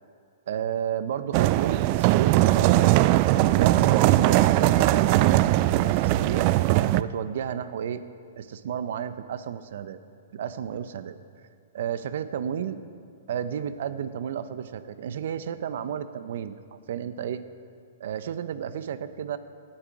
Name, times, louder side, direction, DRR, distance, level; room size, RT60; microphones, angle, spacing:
voice 1, 0.5-2.8 3.5-6.5 6.9-8.0 8.4-10.0 10.3-11.1 11.7-12.8 13.3-16.6 16.9-17.4 18.0-19.4, right 8 dB, 65° right, 13 dB, 0.7 m, -32 dB
sound 1, 1.3-7.0, right 16 dB, 40° right, 0.3 m, -20 dB
17.5 x 8.9 x 4.8 m, 2.2 s
hypercardioid pair, 135°, 0 cm